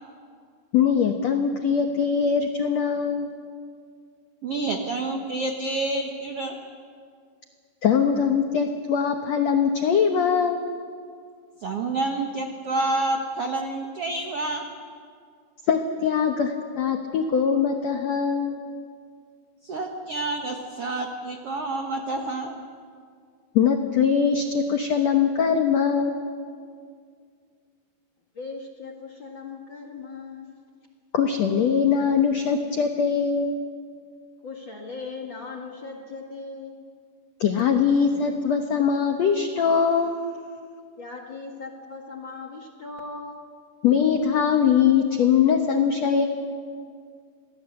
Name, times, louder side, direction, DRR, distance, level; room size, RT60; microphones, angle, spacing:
voice 1, 0.7-3.3 7.8-10.6 15.7-18.5 23.5-26.2 31.1-33.5 37.4-40.1 43.8-46.3, left 7 dB, 75° left, 5 dB, 1.5 m, -22 dB
voice 2, 4.4-6.6 11.6-14.7 19.6-22.6, right 2 dB, 70° right, 3 dB, 1.4 m, -28 dB
voice 3, 28.3-30.6 34.4-36.8 41.0-43.5, left 4 dB, 45° left, 0 dB, 1.6 m, -38 dB
27.5 x 19.5 x 7.9 m, 2.2 s
omnidirectional pair, 4.8 m